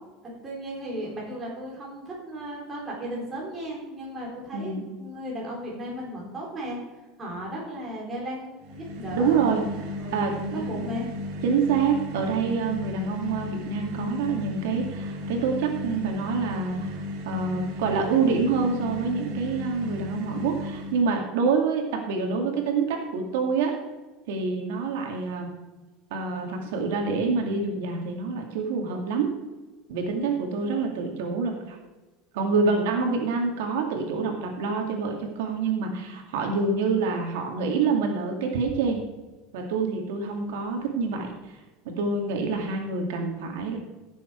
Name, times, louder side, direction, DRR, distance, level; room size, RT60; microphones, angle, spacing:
voice 1, 0.2-6.8 7.2-9.3 9.9-11.1, right 1 dB, 15° right, -4 dB, 4.1 m, -35 dB
voice 2, 4.5-4.8 9.1-9.6 10.1-10.8 11.4-17.0 17.3-23.7 24.3-25.5 26.1-29.3 29.9-31.8 32.3-39.0 39.5-41.6 41.8-43.8, right 5 dB, 85° right, 2 dB, 2.3 m, -26 dB
sound 1, 8.6-21.2, left 1 dB, 50° right, 1.8 m, -34 dB
16.0 x 7.2 x 4.6 m, 1.2 s
cardioid pair, 170°, 0 cm